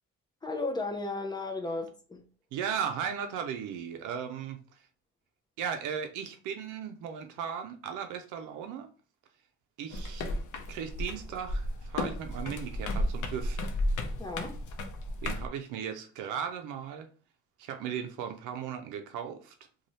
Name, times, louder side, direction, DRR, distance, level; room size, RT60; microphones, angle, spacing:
voice 1, 0.4-2.2 14.2-14.5, left 2 dB, 15° left, 0.6 m, -34 dB
voice 2, 2.5-4.8 5.6-8.9 9.8-10.2 10.7-13.6 15.2-17.1 17.6-19.5, right 7 dB, 90° right, 0.5 m, -36 dB
sound 1, 9.9-15.5, left 1 dB, 75° left, 0.6 m, -33 dB
2.6 x 2.3 x 3.0 m
cardioid pair, 90°, 30 cm